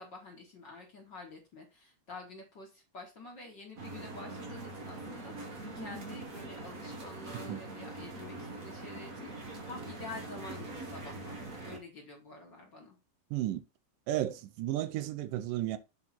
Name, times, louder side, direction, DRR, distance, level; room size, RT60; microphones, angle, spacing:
voice 1, 0.0-13.0, left 2 dB, 40° left, 1.8 m, -48 dB
sound 1, 3.8-11.8, right 2 dB, 50° right, 1.0 m, -43 dB
voice 2, 13.3-13.6 14.1-15.8, right 13 dB, 80° right, 2.3 m, -33 dB
7.2 x 3.7 x 5.8 m
omnidirectional pair, 3.8 m